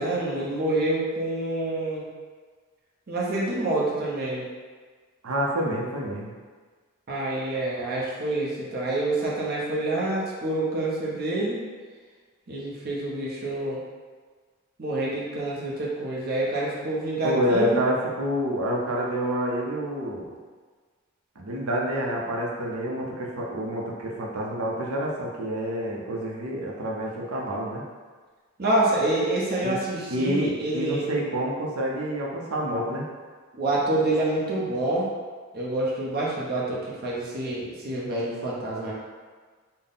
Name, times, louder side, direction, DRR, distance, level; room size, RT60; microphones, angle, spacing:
voice 1, 0.0-2.1 3.1-4.5 7.1-11.6 12.5-13.8 14.8-17.8 28.6-31.1 33.5-35.1 35.5-38.9, right 2 dB, 45° right, -5 dB, 0.7 m, -27 dB
voice 2, 5.2-6.4 17.2-20.3 21.4-27.8 29.6-29.8 30.1-33.1, equal, 75° right, -2 dB, 0.7 m, -28 dB
3.7 x 2.1 x 3.8 m, 1.5 s
head